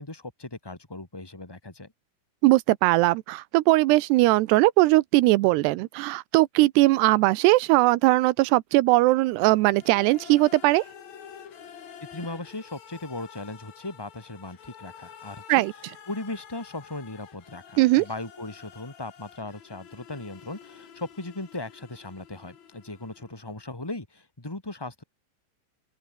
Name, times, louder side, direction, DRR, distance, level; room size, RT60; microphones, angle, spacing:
voice 1, 0.0-1.9 12.1-25.0, left 2 dB, 15° left, 0.8 m, -38 dB
voice 2, 2.4-10.8 15.5-15.7 17.8-18.1, right 19 dB, 80° right, 2.6 m, -20 dB
sound 1, 9.7-23.5, left 8 dB, 45° left, 2.8 m, -49 dB
open air
omnidirectional pair, 5.4 m